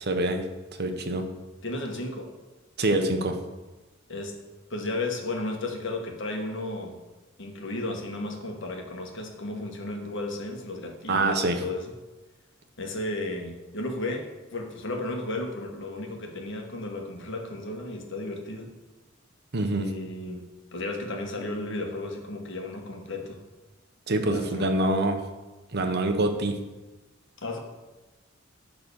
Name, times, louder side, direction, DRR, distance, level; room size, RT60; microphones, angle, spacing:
voice 1, 0.1-0.4 0.8-1.2 2.8-3.4 11.1-11.6 19.5-19.9 24.1-25.2 25.7-26.6, right 2 dB, 55° right, 6 dB, 1.0 m, -25 dB
voice 2, 1.6-2.3 4.1-4.3 4.7-7.0 7.4-11.9 12.8-18.7 19.7-20.4 20.7-23.4 24.2-24.8 27.4-27.6, left 2 dB, 65° left, 2 dB, 1.5 m, -34 dB
11.0 x 4.0 x 7.1 m, 1.1 s
head